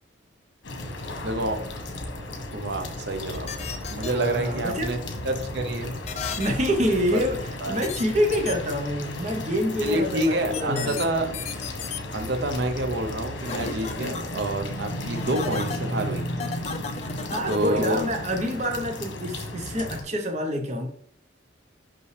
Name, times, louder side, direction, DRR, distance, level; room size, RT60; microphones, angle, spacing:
sound 1, 0.6-20.0, left 1 dB, 75° left, 1.2 m, -34 dB
voice 1, 1.2-1.7 2.5-3.5 3.9-5.0 5.2-6.0 7.1-7.2 7.6-7.8 9.8-11.4 12.1-16.3 17.5-18.0, right 1 dB, 60° right, 6 dB, 0.6 m, -28 dB
sound 2, 3.3-4.1 6.1-6.5 7.8-8.0 8.3-8.5 10.5-11.1 11.3-12.0 13.5-14.2 15.1-15.8 16.4-17.7, left 5 dB, 35° left, 0.5 m, -33 dB
voice 2, 4.1-5.0 6.4-11.1 16.9-20.9, equal, 35° right, 3 dB, 0.9 m, -27 dB
5.5 x 5.5 x 3.2 m, 0.62 s
head